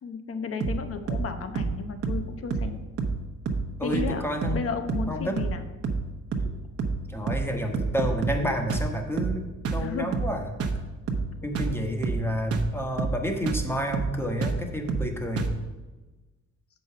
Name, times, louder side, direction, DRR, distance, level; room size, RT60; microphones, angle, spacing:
voice 1, 0.0-2.8 3.8-4.2 4.5-5.6 9.8-10.1, left 5 dB, 50° left, 8 dB, 1.0 m, -33 dB
sound 1, 0.6-0.8 1.1-1.3 1.6-1.8 2.0-2.3 2.5-2.7 3.0-3.2 3.5-3.7 3.9-4.2 4.4-4.6 4.9-5.1 5.4-5.6 5.8-6.1 6.3-6.5 6.8-7.0 7.3-7.5 7.7-8.4 8.7-8.9 9.2-9.4 9.7-9.9 10.1-10.3 10.6-10.8 11.1-11.3 11.6-11.8 12.0-12.3 12.5-12.7 13.0-13.2 13.5-13.7 13.9-14.2 14.4-14.6 14.9-15.1 15.4-15.6, right 4 dB, 50° right, 1.1 m, -28 dB
voice 2, 3.8-4.6 5.1-5.4 7.1-10.4 11.4-15.5, equal, 10° left, 3 dB, 1.3 m, -30 dB
7.4 x 5.4 x 5.7 m, 1.2 s
cardioid pair, 90°, 30 cm